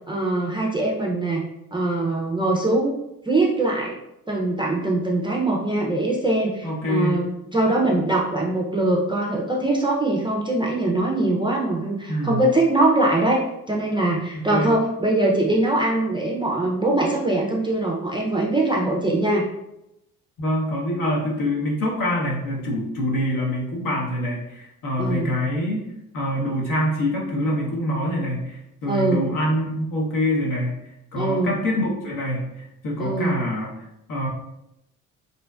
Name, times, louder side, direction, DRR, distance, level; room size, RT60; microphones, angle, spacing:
voice 1, 0.1-1.4 1.7-2.9 3.3-3.9 4.3-19.4 25.0-25.3 28.9-29.2 31.2-31.5 33.0-33.3, right 2 dB, 15° right, -2 dB, 0.4 m, -22 dB
voice 2, 6.6-7.2 12.1-12.4 14.3-14.8 20.4-25.9 26.1-30.8 31.1-33.7 34.1-34.3, equal, 60° left, -2 dB, 0.9 m, -25 dB
2.6 x 2.1 x 2.3 m, 0.85 s
hypercardioid pair, 55°, 37 cm